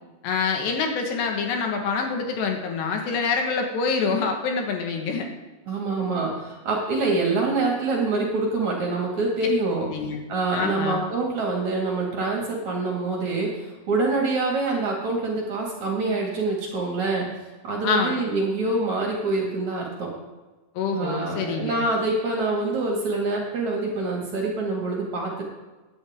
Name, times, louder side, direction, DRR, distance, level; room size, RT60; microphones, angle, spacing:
voice 1, 0.2-5.3 9.9-10.2 10.5-11.0 17.8-18.2 20.8-21.8, left 5 dB, 75° left, 2 dB, 3.6 m, -26 dB
voice 2, 5.7-9.9 10.3-17.3 17.6-20.1 20.9-25.4, right 3 dB, 50° right, -1 dB, 2.9 m, -25 dB
16.5 x 10.5 x 3.6 m, 1.2 s
omnidirectional pair, 5.0 m